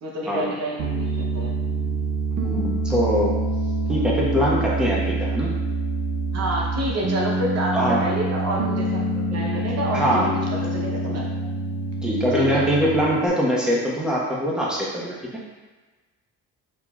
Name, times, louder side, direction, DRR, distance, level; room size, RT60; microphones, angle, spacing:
voice 1, 0.0-1.5 6.3-11.3 12.3-12.7, right 1 dB, 55° right, -2 dB, 0.9 m, -28 dB
Piano, 0.8-13.3, right 2 dB, 80° right, 0.7 m, -26 dB
voice 2, 2.4-3.3 3.9-5.5 7.7-8.0 9.9-10.3 12.0-15.3, equal, 5° right, -5 dB, 1.1 m, -23 dB
6.8 x 2.8 x 2.4 m, 1.2 s
cardioid pair, 90°, 30 cm